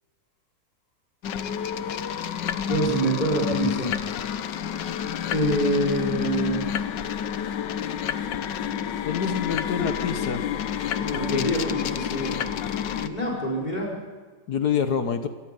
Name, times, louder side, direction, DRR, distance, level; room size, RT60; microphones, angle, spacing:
sound 1, 1.2-13.1, left 8 dB, 85° left, 1.6 m, -29 dB
voice 1, 2.7-4.0 5.3-6.6 11.0-12.5 13.0-13.9, right 1 dB, 25° left, -4 dB, 5.3 m, -26 dB
voice 2, 9.1-10.4 11.2-11.5 14.5-15.3, left 7 dB, 65° left, 8 dB, 1.6 m, -26 dB
28.5 x 17.5 x 5.4 m, 1.4 s
omnidirectional pair, 1.9 m